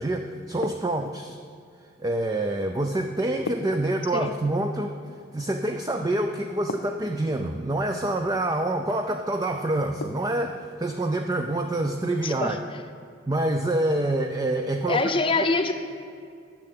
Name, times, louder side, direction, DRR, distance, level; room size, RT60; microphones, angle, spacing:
voice 1, 0.0-1.4 2.0-5.0 5.3-12.6 13.3-15.1, right 1 dB, 20° right, 5 dB, 0.4 m, -26 dB
sound 1, 0.6-1.4 3.5-4.5 6.7-7.4 10.0-10.6, left 4 dB, 70° left, 0.5 m, -37 dB
voice 2, 12.2-12.6 14.9-15.7, left 3 dB, 25° left, 7 dB, 0.7 m, -24 dB
10.5 x 6.6 x 8.6 m, 2.4 s
head